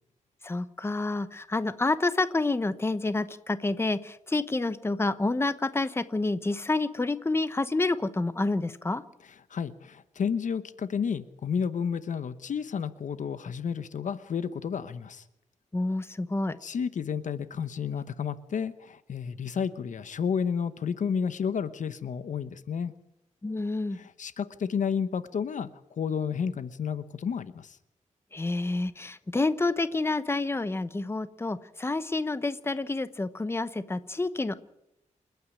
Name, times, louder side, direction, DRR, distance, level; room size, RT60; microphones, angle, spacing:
voice 1, 0.4-9.0 15.7-16.6 23.4-24.0 28.3-34.6, left 2 dB, 20° left, 13 dB, 0.9 m, -28 dB
voice 2, 9.2-15.2 16.6-22.9 23.9-27.8, left 7 dB, 75° left, 13 dB, 1.0 m, -31 dB
28.0 x 9.5 x 9.9 m, 0.83 s
wide cardioid pair, 135°, 13 cm